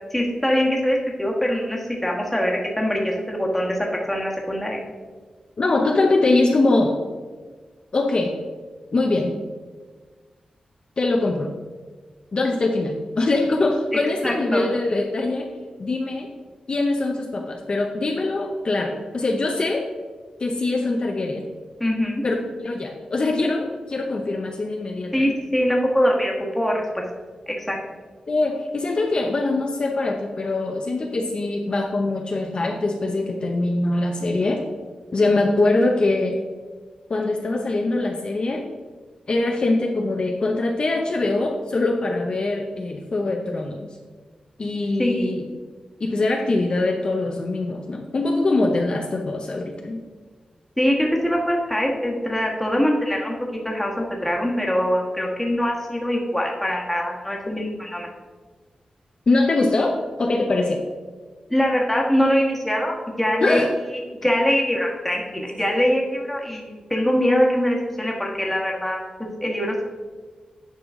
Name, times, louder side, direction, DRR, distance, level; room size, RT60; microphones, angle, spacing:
voice 1, 0.1-4.8 14.2-14.7 21.8-22.1 25.1-27.0 27.5-27.8 45.0-45.4 50.8-53.3 53.6-58.1 61.5-69.8, equal, 5° left, -1 dB, 1.4 m, -23 dB
voice 2, 5.6-7.0 7.9-8.3 8.9-9.4 11.0-11.5 12.3-15.5 15.8-16.3 16.7-19.8 20.4-21.4 22.2-22.3 22.6-25.3 28.3-34.6 35.1-36.4 37.1-38.6 39.3-44.0 44.6-45.5 46.0-50.0 59.3-60.8 63.4-63.7, left 2 dB, 45° left, 1 dB, 0.7 m, -23 dB
10.0 x 5.7 x 3.7 m, 1.4 s
wide cardioid pair, 150°, 2 cm